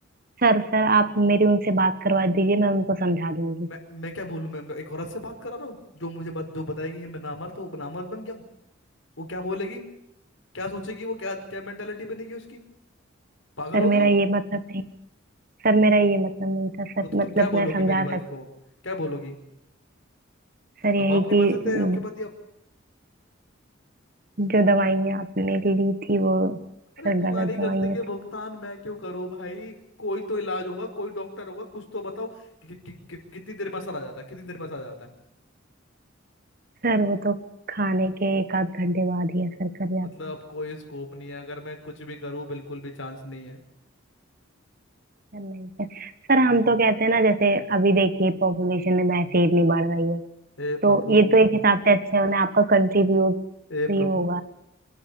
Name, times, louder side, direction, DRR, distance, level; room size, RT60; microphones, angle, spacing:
voice 1, 0.4-3.7 13.7-14.8 15.6-18.2 20.8-22.0 24.4-26.6 27.0-28.0 36.8-37.3 37.7-40.1 45.3-50.2 50.8-53.4 53.9-54.4, right 2 dB, 45° right, 12 dB, 1.5 m, -22 dB
voice 2, 3.6-8.4 9.2-9.9 10.5-12.6 13.6-14.1 17.1-18.5 18.8-19.3 21.0-22.3 27.0-35.1 40.0-43.6 50.6-51.4 53.7-54.3, left 1 dB, 75° left, 4 dB, 5.2 m, -33 dB
26.5 x 11.5 x 9.9 m, 0.82 s
head